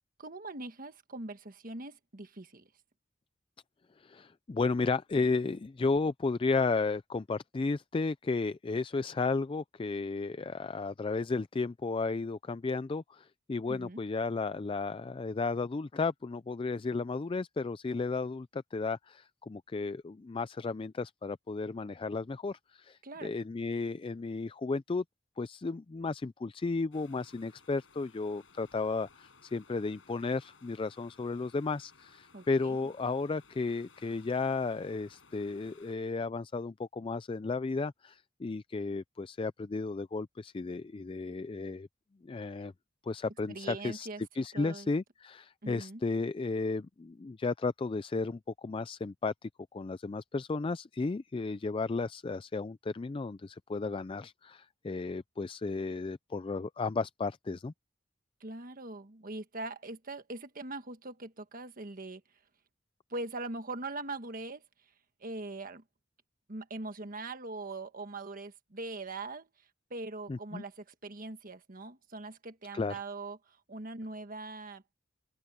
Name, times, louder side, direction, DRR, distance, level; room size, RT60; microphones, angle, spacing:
voice 1, 0.2-2.7 13.7-14.0 23.0-23.3 32.3-32.9 43.5-44.9 45.6-46.0 58.4-62.2 63.1-64.6 65.2-65.8 66.5-69.5 69.9-74.9, right 2 dB, 45° right, 1.5 m, -42 dB
voice 2, 4.0-25.0 25.4-41.9 42.2-42.7 43.0-44.1 44.4-57.7 70.3-70.6 72.7-73.0, left 3 dB, 25° left, 0.4 m, -34 dB
sound 1, 26.9-36.0, left 4 dB, 90° left, 5.6 m, -60 dB
open air
head